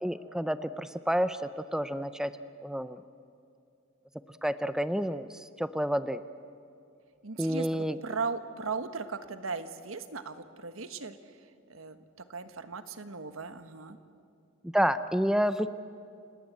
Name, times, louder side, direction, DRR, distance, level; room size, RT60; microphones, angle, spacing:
voice 1, 0.0-2.4 2.6-3.0 4.4-5.3 5.6-6.2 7.4-8.0 14.6-15.7, equal, 5° right, 12 dB, 0.5 m, -29 dB
voice 2, 7.2-11.2 11.7-12.0 12.3-14.0, right 4 dB, 85° right, 10 dB, 1.4 m, -37 dB
29.5 x 18.0 x 8.2 m, 2.5 s
head